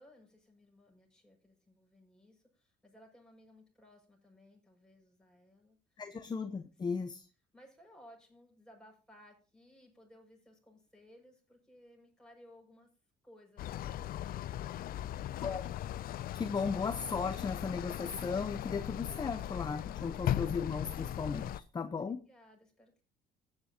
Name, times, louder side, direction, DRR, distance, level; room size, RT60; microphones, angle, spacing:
voice 1, 0.0-6.0 7.5-12.9 13.2-15.6 21.9-23.0, left 1 dB, 5° left, 0 dB, 6.4 m, -60 dB
voice 2, 6.0-7.2 15.4-15.7 16.3-22.2, left 5 dB, 25° left, 9 dB, 0.9 m, -36 dB
sound 1, 13.6-21.6, left 12 dB, 60° left, 0.5 m, -38 dB
15.0 x 9.7 x 2.9 m, 0.34 s
cardioid pair, 110°, 17 cm